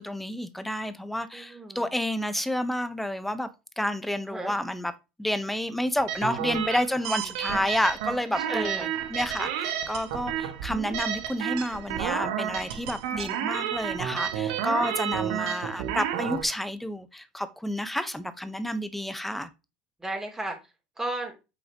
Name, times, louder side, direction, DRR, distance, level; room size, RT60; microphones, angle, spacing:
voice 1, 0.0-3.5 3.8-4.9 5.2-19.5, left 1 dB, 5° left, 1.3 m, -30 dB
voice 2, 1.3-1.9 4.3-4.6 7.2-7.4 8.4-8.9 20.0-21.4, right 2 dB, 10° right, 3.6 m, -35 dB
sound 1, 6.1-16.4, right 10 dB, 65° right, 1.5 m, -31 dB
8.6 x 6.3 x 3.1 m
hypercardioid pair, 75°, 4 cm